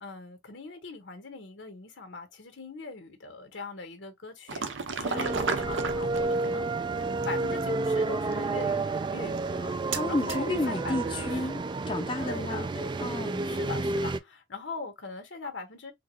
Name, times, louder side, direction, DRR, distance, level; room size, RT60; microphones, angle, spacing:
voice 1, 0.0-6.7 7.2-9.7 10.1-11.4 12.2-13.0 13.4-15.9, left 3 dB, 80° left, 1.2 m, -41 dB
sound 1, 4.5-11.5, right 4 dB, 90° right, 0.7 m, -37 dB
voice 2, 5.0-5.6 9.9-12.7 13.0-13.4, left 2 dB, 25° left, 0.6 m, -32 dB
sound 2, 5.1-14.2, right 3 dB, 25° right, 0.3 m, -30 dB
3.9 x 2.3 x 3.0 m
head